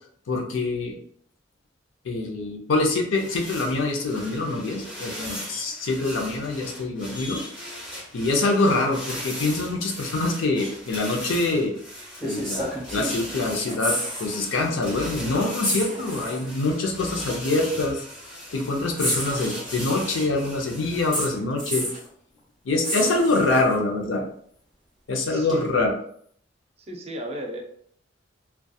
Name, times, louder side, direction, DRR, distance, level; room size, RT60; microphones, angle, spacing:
voice 1, 0.3-1.0 2.0-7.4 8.1-11.7 12.2-18.0 18.5-21.9 22.6-24.2 25.1-25.9, left 2 dB, 85° left, 2 dB, 0.5 m, -25 dB
sound 1, 3.1-21.3, equal, 45° left, 1.2 m, -38 dB
sound 2, 11.3-11.5 12.2-13.3 13.6-14.4 14.7-14.9 15.6-16.5 17.5-17.6 19.0-20.0 21.1-22.1 22.8-23.7 25.5-25.6, right 1 dB, ahead, 1.2 m, -30 dB
voice 2, 25.3-25.6 26.9-27.6, right 1 dB, 35° right, 1 dB, 0.4 m, -34 dB
2.7 x 2.2 x 2.3 m, 0.63 s
head